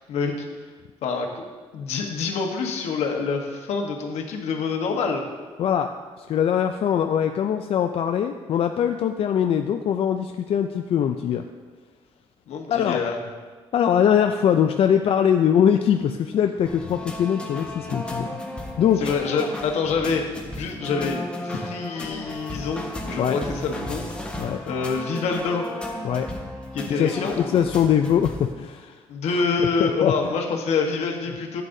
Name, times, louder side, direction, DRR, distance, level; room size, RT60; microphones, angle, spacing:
voice 1, 0.1-0.5 1.0-1.4 1.7-5.2 12.5-13.2 19.0-20.2 20.6-24.1 24.7-25.7 26.7-27.6 29.1-31.6, left 5 dB, 85° left, 2 dB, 1.2 m, -26 dB
voice 2, 5.6-11.5 12.7-13.0 13.7-18.4 18.8-19.1 23.2-23.4 24.4-24.6 26.0-26.3 26.9-29.0 29.3-30.3, left 8 dB, 65° left, 6 dB, 0.4 m, -22 dB
sound 1, 16.7-28.5, left 1 dB, 10° left, 1.2 m, -34 dB
11.0 x 8.3 x 2.7 m, 1.4 s
cardioid pair, 100°, 11 cm